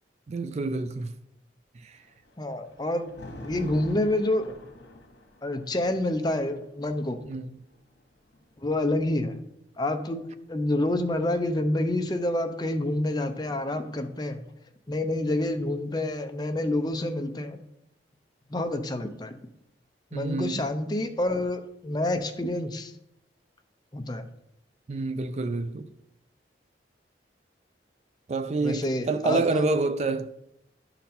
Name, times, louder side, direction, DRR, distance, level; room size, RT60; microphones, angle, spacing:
voice 1, 0.3-1.1 1.8-2.0 7.3-7.6 20.1-20.7 24.9-25.9 28.3-30.3, right 3 dB, 40° right, 0.3 m, -28 dB
Thunder, 1.9-9.1 10.2-11.9, left 1 dB, 90° left, 1.2 m, -47 dB
voice 2, 2.4-3.1 3.4-4.6 5.4-7.2 8.6-9.3 9.8-14.4 14.9-17.6 18.5-19.3 20.1-22.9 23.9-24.2 28.6-29.6, left 1 dB, 25° left, 0.6 m, -28 dB
11.5 x 4.0 x 4.2 m
head